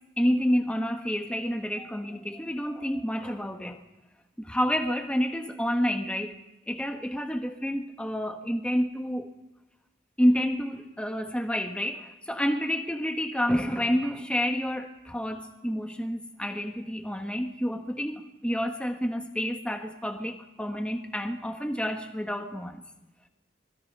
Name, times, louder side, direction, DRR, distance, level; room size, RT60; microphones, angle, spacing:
voice 1, 0.2-3.8 4.4-6.3 6.7-9.3 10.2-22.8, equal, 5° left, 5 dB, 1.4 m, -29 dB
25.5 x 21.0 x 5.5 m, 0.98 s
head